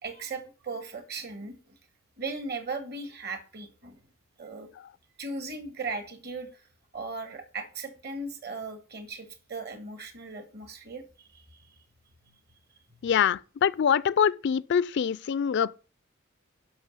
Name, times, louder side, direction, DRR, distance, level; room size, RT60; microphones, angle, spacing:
voice 1, 0.0-1.8 2.2-4.0 4.4-4.7 5.2-6.6 6.9-11.0 11.3-11.4 13.0-13.1, right 3 dB, 50° right, 1.9 m, -37 dB
voice 2, 13.0-15.8, left 7 dB, 55° left, 0.4 m, -24 dB
11.0 x 6.0 x 5.5 m
head